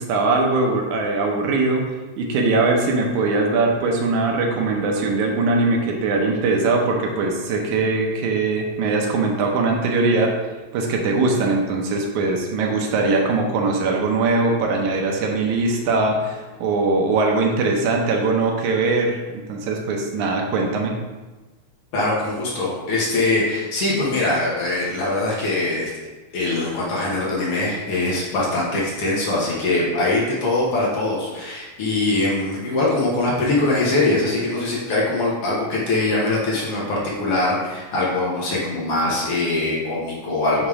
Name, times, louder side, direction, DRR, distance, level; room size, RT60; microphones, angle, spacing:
voice 1, 0.0-1.8 2.2-10.3 10.7-19.2 19.5-20.9, right 3 dB, 85° right, 1 dB, 2.3 m, -21 dB
voice 2, 21.9-25.9 26.3-40.7, left 2 dB, 60° left, -5 dB, 1.9 m, -22 dB
7.0 x 3.0 x 4.8 m, 1.2 s
omnidirectional pair, 3.4 m